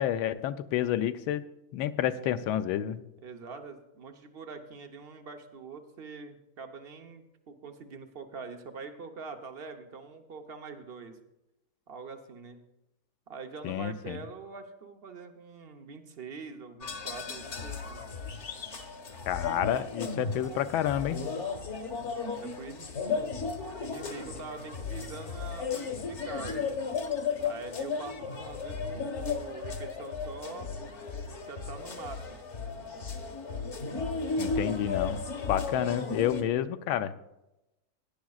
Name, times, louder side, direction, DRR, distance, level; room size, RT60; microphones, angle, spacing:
voice 1, 0.0-1.4 1.7-3.0 13.6-14.2 19.3-21.2 34.4-35.2 35.5-37.1, left 11 dB, 80° left, 12 dB, 1.4 m, -29 dB
voice 2, 3.2-11.2 11.9-12.6 13.3-18.1 22.4-23.4 23.8-26.7 27.4-32.4, right 4 dB, 55° right, 5 dB, 0.6 m, -44 dB
sound 1, 16.8-36.4, left 5 dB, 40° left, 1.2 m, -35 dB
17.5 x 10.5 x 2.4 m, 0.92 s
omnidirectional pair, 2.3 m